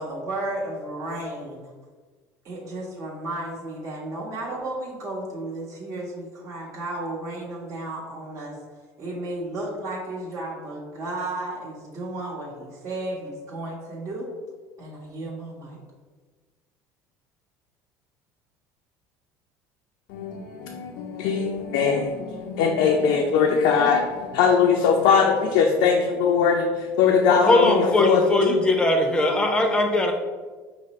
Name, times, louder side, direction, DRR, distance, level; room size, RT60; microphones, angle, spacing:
voice 1, 0.0-1.7 2.4-8.6 9.0-14.3 14.8-15.8, right 2 dB, 45° right, -5 dB, 1.1 m, -33 dB
voice 2, 20.1-26.7 27.0-28.6, left 6 dB, 75° left, 1 dB, 0.4 m, -21 dB
voice 3, 27.3-30.1, left 2 dB, 10° left, 4 dB, 0.7 m, -20 dB
5.0 x 2.1 x 4.2 m, 1.4 s
supercardioid pair, 90°, 8 cm